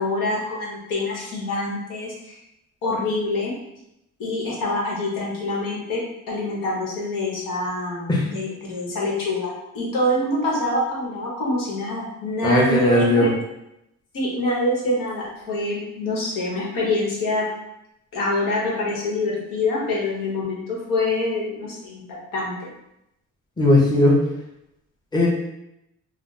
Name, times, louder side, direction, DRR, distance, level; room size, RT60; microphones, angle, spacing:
voice 1, 0.0-2.4 2.8-3.5 4.2-6.0 6.3-13.3 14.1-17.4 18.1-22.0 22.3-22.5, left 2 dB, 85° left, -4 dB, 1.1 m, -25 dB
voice 2, 12.4-13.3 23.6-24.2 25.1-25.3, left 1 dB, 15° left, -3 dB, 0.7 m, -17 dB
2.4 x 2.1 x 3.8 m, 0.85 s
cardioid pair, 90°, 32 cm